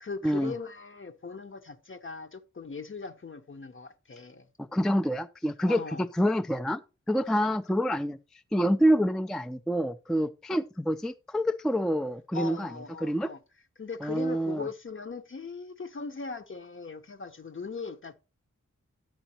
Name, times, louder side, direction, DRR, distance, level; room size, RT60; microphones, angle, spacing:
voice 1, 0.0-4.5 5.7-6.1 12.3-13.4 13.8-18.1, left 4 dB, 40° left, 0.9 m, -39 dB
voice 2, 4.6-6.8 7.1-8.2 8.5-12.7 13.0-13.3 14.0-14.7, equal, ahead, 0.3 m, -27 dB
10.0 x 8.9 x 2.9 m
wide cardioid pair, 95°, 30 cm